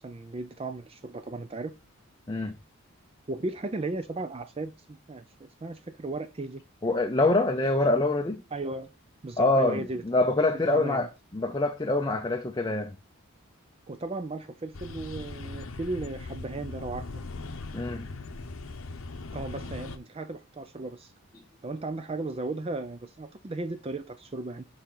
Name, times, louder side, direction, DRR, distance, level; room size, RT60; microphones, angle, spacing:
voice 1, 0.0-1.7 3.3-6.6 8.5-8.9 9.2-10.0 10.5-11.1 13.9-17.0 19.3-21.1 21.6-24.6, right 2 dB, 25° right, 0.4 m, -35 dB
voice 2, 6.8-8.4 9.4-11.1 11.3-13.0 17.7-18.1, left 2 dB, 20° left, 0.6 m, -25 dB
sound 1, 14.7-20.0, left 3 dB, 65° left, 0.7 m, -39 dB
7.0 x 5.0 x 3.8 m
head